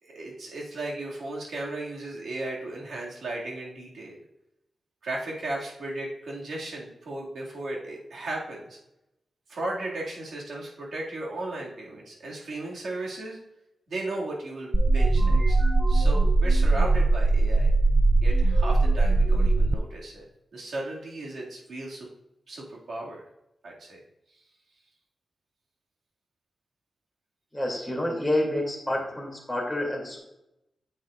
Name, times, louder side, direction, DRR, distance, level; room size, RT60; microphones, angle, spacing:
voice 1, 0.0-4.1 5.0-8.8 9.5-13.4 13.9-17.7 18.2-20.3 20.5-22.1 22.5-23.2 23.6-24.0, right 2 dB, 75° right, -3 dB, 2.2 m, -35 dB
sound 1, 14.7-19.7, right 2 dB, 20° right, 0.3 m, -20 dB
voice 2, 27.5-30.2, left 1 dB, 5° left, -3 dB, 2.7 m, -28 dB
9.2 x 7.8 x 2.5 m, 0.85 s
wide cardioid pair, 110°, 0 cm